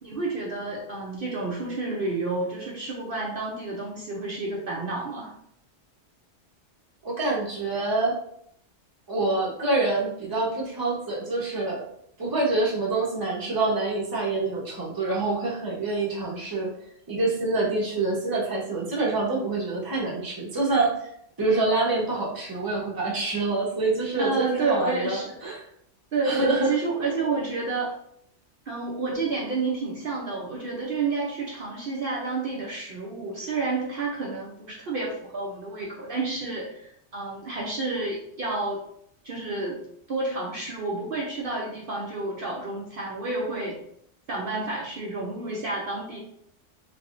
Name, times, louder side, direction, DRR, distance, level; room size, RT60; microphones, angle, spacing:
voice 1, 0.0-5.3 24.2-25.4 26.1-27.9 28.7-38.8 39.2-39.8 40.1-43.8 44.3-46.2, right 3 dB, 55° right, -3 dB, 0.8 m, -30 dB
voice 2, 7.0-8.1 9.1-11.8 12.2-16.7 17.1-21.1 21.4-25.6 26.2-26.7, right 3 dB, 20° right, -4 dB, 0.8 m, -26 dB
3.4 x 3.3 x 2.5 m, 0.69 s
omnidirectional pair, 1.2 m